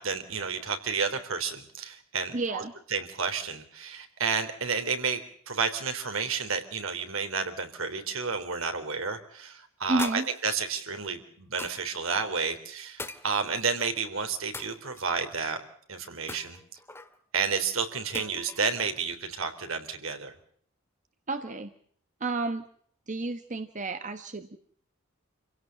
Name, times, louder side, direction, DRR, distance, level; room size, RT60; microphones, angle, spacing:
voice 1, 0.0-2.6 2.9-15.6 15.9-16.6 17.3-20.3, right 5 dB, 70° right, 7 dB, 3.6 m, -31 dB
voice 2, 2.3-2.7 9.9-10.3 21.3-21.7 22.2-22.6 23.1-24.6, right 2 dB, 35° right, 8 dB, 1.3 m, -31 dB
sound 1, 10.0-10.7 11.6-12.0 13.0-13.8 14.5-15.3 16.3-17.2 18.1-18.7, left 2 dB, 10° left, 2.1 m, -41 dB
28.0 x 17.0 x 7.7 m, 0.62 s
head